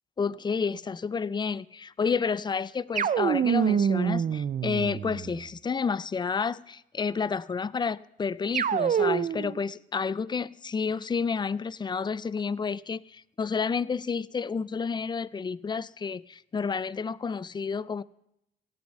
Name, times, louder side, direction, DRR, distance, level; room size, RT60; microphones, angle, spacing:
voice 1, 0.2-18.0, left 5 dB, 20° left, 0.4 m, -30 dB
sound 1, 3.0-5.4 8.5-9.6, right 8 dB, 40° right, 0.5 m, -26 dB
16.5 x 7.8 x 5.4 m
cardioid pair, 90°, 20 cm